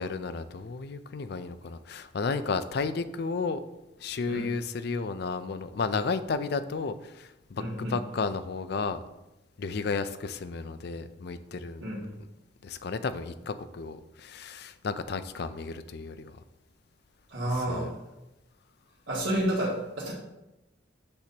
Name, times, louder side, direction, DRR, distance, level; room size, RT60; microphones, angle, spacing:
voice 1, 0.0-3.6 4.0-9.0 9.6-11.9 12.6-16.4 17.5-17.9, left 4 dB, 60° left, 11 dB, 0.5 m, -33 dB
voice 2, 7.6-7.9 11.8-12.0 17.3-17.9 19.1-20.1, right 1 dB, 80° right, -10 dB, 2.1 m, -30 dB
8.7 x 6.0 x 2.9 m, 0.94 s
head